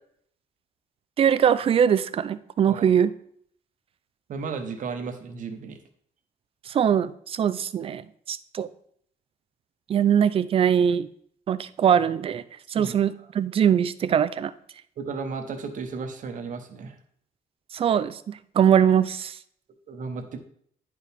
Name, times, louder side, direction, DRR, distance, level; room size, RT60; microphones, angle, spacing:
voice 1, 1.2-3.1 6.7-8.0 8.3-8.7 9.9-11.1 11.5-12.4 12.7-14.5 17.7-18.2 18.6-19.3, right 8 dB, 35° right, 14 dB, 0.4 m, -21 dB
voice 2, 4.3-5.8 12.8-13.0 15.0-17.0 19.9-20.4, right 5 dB, 55° right, 5 dB, 1.0 m, -34 dB
10.0 x 4.6 x 3.5 m, 0.64 s
cardioid pair, 145°, 16 cm